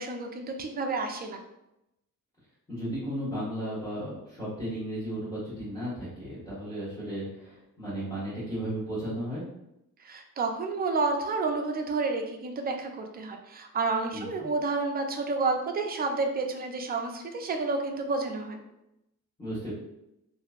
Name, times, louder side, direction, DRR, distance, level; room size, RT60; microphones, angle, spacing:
voice 1, 0.0-1.4 10.0-18.6, right 3 dB, 30° right, 3 dB, 0.4 m, -30 dB
voice 2, 2.7-9.4 14.1-14.3 19.4-19.7, right 1 dB, 10° left, -12 dB, 1.2 m, -34 dB
2.8 x 2.5 x 2.4 m, 0.86 s
cardioid pair, 125°, 34 cm